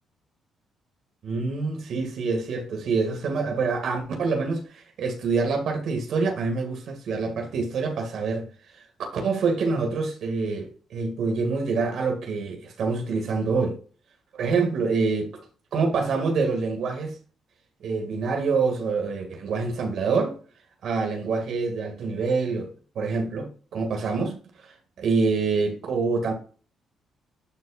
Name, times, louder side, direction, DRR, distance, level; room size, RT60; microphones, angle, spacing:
voice 1, 1.2-8.5 9.1-13.8 14.3-15.3 15.7-17.2 17.8-20.4 20.8-24.7 25.0-26.3, right 4 dB, 70° right, 2.2 m, -26 dB
11.0 x 4.5 x 2.5 m
cardioid pair, 90°, 0 cm